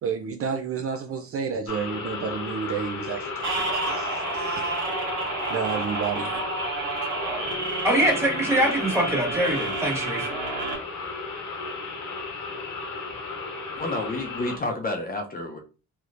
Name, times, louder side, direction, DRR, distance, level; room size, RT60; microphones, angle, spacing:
voice 1, 0.0-4.8 5.5-6.3, right 6 dB, 50° right, 0.4 m, -31 dB
sound 1, 1.7-14.6, left 4 dB, 80° left, 1.2 m, -34 dB
sound 2, 3.4-10.8, right 3 dB, 80° right, 1.5 m, -30 dB
voice 2, 7.8-10.3, right 1 dB, 10° right, 1.5 m, -23 dB
voice 3, 13.8-15.6, left 2 dB, 30° left, 0.6 m, -30 dB
3.2 x 2.9 x 2.5 m
cardioid pair, 90°, 30 cm